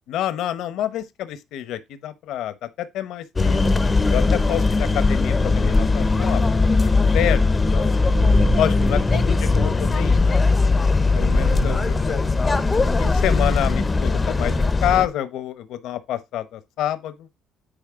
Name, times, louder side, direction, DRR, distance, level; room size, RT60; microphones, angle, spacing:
voice 1, 0.1-3.6 4.1-6.4 6.7-8.0 8.6-10.5 11.1-12.4 13.0-17.3, left 11 dB, 80° left, 0.9 m, -28 dB
sound 1, 3.4-15.1, left 3 dB, 20° left, 0.7 m, -19 dB
sound 2, 5.7-13.3, right 5 dB, 45° right, 1.4 m, -32 dB
8.9 x 5.1 x 3.6 m
cardioid pair, 130°, 0 cm